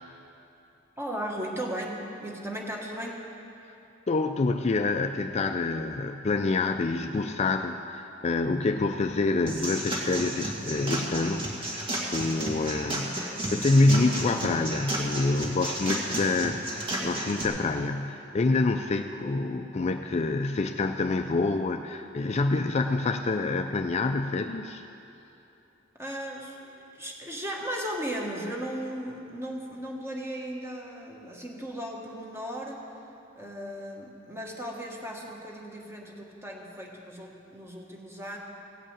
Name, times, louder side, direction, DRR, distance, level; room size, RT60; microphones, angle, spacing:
voice 1, 1.0-3.2 13.1-13.3 19.2-19.4 26.0-32.8 33.4-38.4, equal, 15° right, -1 dB, 1.5 m, -36 dB
voice 2, 4.1-24.8, left 3 dB, 35° left, 6 dB, 0.4 m, -27 dB
sound 1, 9.5-17.5, right 1 dB, 30° right, 2.0 m, -32 dB
16.0 x 5.5 x 8.7 m, 2.8 s
head